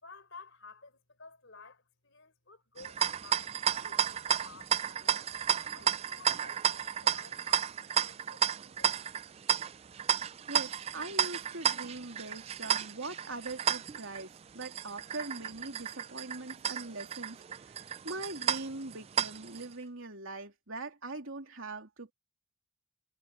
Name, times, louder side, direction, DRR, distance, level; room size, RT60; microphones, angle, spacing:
voice 1, 0.0-5.3 5.7-9.1, left 4 dB, 60° left, 4.8 m, -54 dB
sound 1, 2.8-19.7, right 8 dB, 30° right, 0.3 m, -32 dB
voice 2, 10.5-22.1, right 2 dB, 65° right, 3.2 m, -42 dB
head